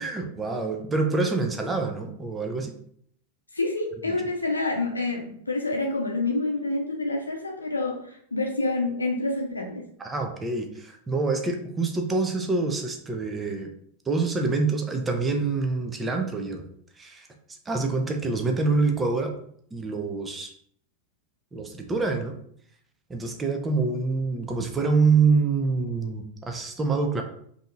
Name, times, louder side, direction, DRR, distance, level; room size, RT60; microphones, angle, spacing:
voice 1, 0.0-2.7 4.1-4.2 10.0-13.7 14.1-16.6 17.0-17.3 17.7-19.3 19.7-20.5 21.5-22.4 23.1-27.2, right 4 dB, 15° right, 4 dB, 0.6 m, -26 dB
voice 2, 3.5-9.8, left 2 dB, 80° left, 1 dB, 0.6 m, -28 dB
5.1 x 2.8 x 2.5 m, 0.66 s
figure-of-eight pair, 90°, 0 cm